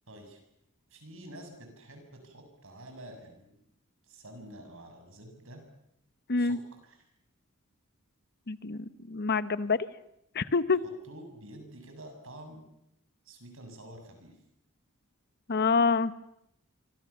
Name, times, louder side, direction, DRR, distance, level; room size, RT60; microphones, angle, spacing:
voice 1, 0.1-0.4 0.9-3.5 4.0-5.7 6.4-7.0 11.0-12.7 13.3-14.3, right 1 dB, 65° right, 5 dB, 7.0 m, -48 dB
voice 2, 8.5-9.8 10.3-10.8 15.5-16.1, left 4 dB, 50° left, 15 dB, 1.0 m, -26 dB
27.5 x 25.0 x 7.1 m, 0.76 s
head